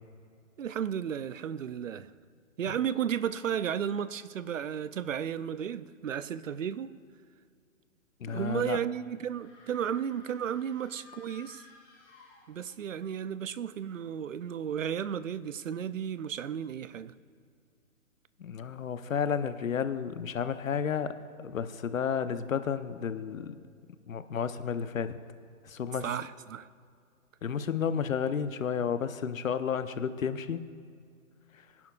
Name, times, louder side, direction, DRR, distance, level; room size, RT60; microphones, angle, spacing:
voice 1, 0.6-2.1 2.6-6.9 8.3-11.7 12.5-17.1 26.0-26.7, right 8 dB, 65° right, 0.6 m, -33 dB
voice 2, 8.2-8.8 18.4-23.6 24.1-25.2 25.6-26.1 27.4-30.7, left 7 dB, 65° left, 0.8 m, -32 dB
sound 1, 9.3-12.9, left 4 dB, 15° left, 2.9 m, -55 dB
22.5 x 11.0 x 2.4 m
hypercardioid pair, 175°, 43 cm